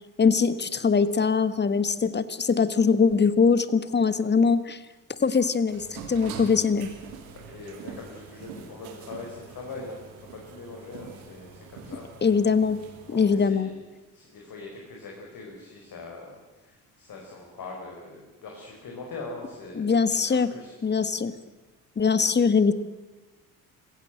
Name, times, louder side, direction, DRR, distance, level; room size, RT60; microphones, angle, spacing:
voice 1, 0.2-4.8 5.2-6.9 12.2-12.8 13.1-13.7 19.8-20.5 20.8-21.3 22.0-22.7, left 5 dB, 20° left, 15 dB, 1.4 m, -22 dB
sound 1, 5.7-13.5, right 6 dB, 70° right, 3.0 m, -44 dB
voice 2, 7.3-12.1 13.0-13.8 14.1-20.7, left 3 dB, 45° left, 0 dB, 5.1 m, -42 dB
26.5 x 16.0 x 7.8 m, 1.2 s
figure-of-eight pair, 50°, 46 cm